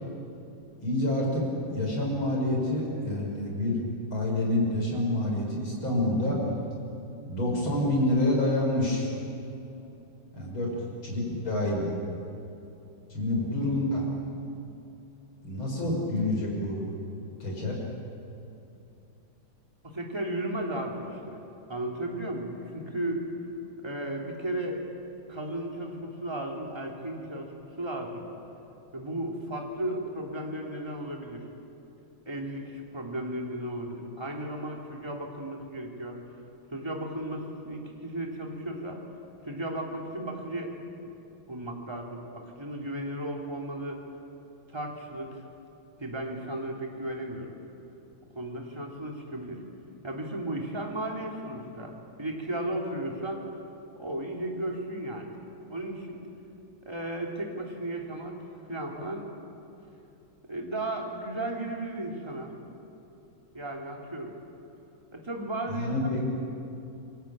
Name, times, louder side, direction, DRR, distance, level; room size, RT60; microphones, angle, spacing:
voice 1, 0.8-1.5 1.7-3.8 4.1-6.4 7.3-9.1 10.3-10.7 11.0-11.9 13.1-14.1 15.4-16.8 17.4-17.8 65.7-66.2, left 1 dB, 80° left, -1 dB, 7.3 m, -27 dB
voice 2, 19.8-21.4 21.7-23.2 23.8-24.8 25.3-28.3 28.9-31.4 32.2-36.2 36.7-39.0 39.4-40.7 41.5-44.0 44.7-45.4 46.0-47.5 48.3-49.6 50.0-51.9 52.2-53.5 54.0-55.3 55.7-56.2 56.8-58.4 58.7-59.3 60.5-62.5 63.5-64.3 65.1-65.9, right 1 dB, 10° right, 0 dB, 3.4 m, -35 dB
29.0 x 22.5 x 9.0 m, 2.9 s
omnidirectional pair, 2.2 m